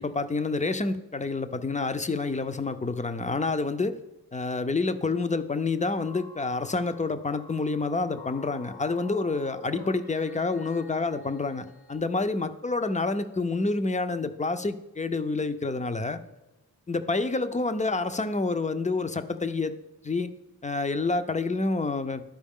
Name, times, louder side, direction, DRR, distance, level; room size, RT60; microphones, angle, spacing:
voice 1, 0.0-4.0 4.3-16.2 16.9-19.7 20.0-20.3 20.6-22.2, left 3 dB, 20° left, 10 dB, 0.4 m, -28 dB
sound 1, 6.0-12.0, left 3 dB, 90° left, 2.5 m, -48 dB
11.5 x 4.6 x 3.6 m, 1.0 s
wide cardioid pair, 70°, 38 cm